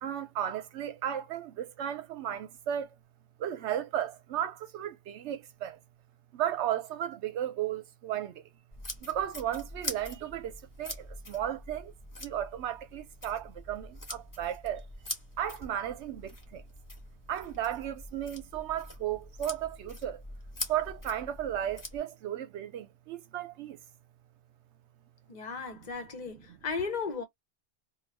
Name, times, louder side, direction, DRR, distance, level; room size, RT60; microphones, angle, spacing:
voice 1, 0.0-2.9 3.4-5.8 6.3-8.5 9.0-11.9 12.2-14.9 15.4-16.6 17.3-20.2 20.7-23.8 26.3-26.6, right 10 dB, 85° right, 0.9 m, -35 dB
sound 1, 8.7-22.0, left 1 dB, 20° left, 0.9 m, -44 dB
voice 2, 25.3-27.2, left 5 dB, 45° left, 0.7 m, -35 dB
2.4 x 2.2 x 3.2 m
omnidirectional pair, 1.1 m